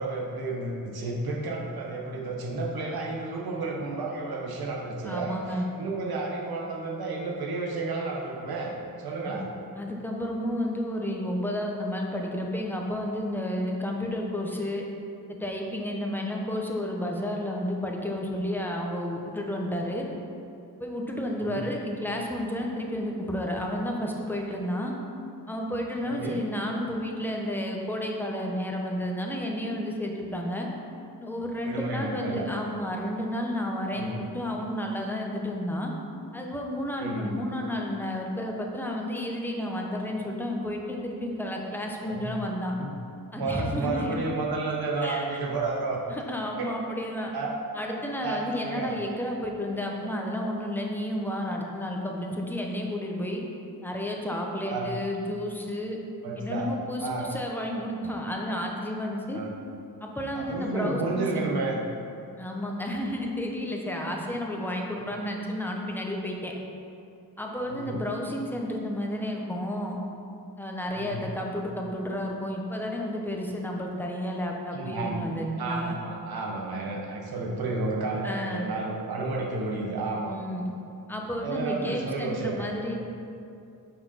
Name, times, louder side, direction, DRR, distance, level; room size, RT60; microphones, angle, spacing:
voice 1, 0.0-8.7 9.0-9.5 21.5-21.7 26.1-26.4 31.6-32.4 33.9-34.2 37.0-37.3 42.0-42.3 42.8-42.9 43.3-46.0 46.6-46.7 47.3-47.5 48.2-48.9 54.7-54.9 56.2-56.7 57.0-57.3 59.3-59.5 60.3-61.8 65.0-65.1 67.6-68.0 70.9-71.3 74.7-75.2 75.6-80.4 81.4-82.7, right 3 dB, 90° right, -2 dB, 1.2 m, -31 dB
voice 2, 5.1-5.7 9.2-9.4 9.7-14.8 15.3-20.1 20.8-24.9 25.5-30.7 31.2-35.9 36.3-42.7 43.3-44.2 45.0-45.4 46.1-47.3 47.7-53.4 53.8-56.0 56.4-59.4 60.0-61.5 62.4-66.5 67.4-70.0 70.6-76.0 78.2-78.7 80.3-80.7 81.1-83.0, left 1 dB, 5° left, 0 dB, 0.8 m, -31 dB
5.8 x 4.7 x 5.6 m, 2.6 s
wide cardioid pair, 110°, 36 cm